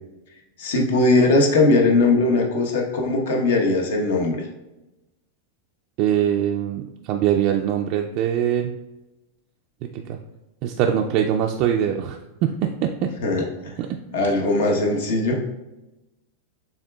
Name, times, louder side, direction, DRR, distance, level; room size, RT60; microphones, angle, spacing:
voice 1, 0.6-4.4 13.2-13.7 14.1-15.4, left 2 dB, 80° left, 1 dB, 1.1 m, -19 dB
voice 2, 6.0-8.7 9.9-10.2 10.6-12.2 12.6-13.1 13.8-13.9, right 9 dB, 40° right, 2 dB, 0.3 m, -22 dB
6.3 x 3.6 x 2.3 m, 1.0 s
supercardioid pair, 155°, 0 cm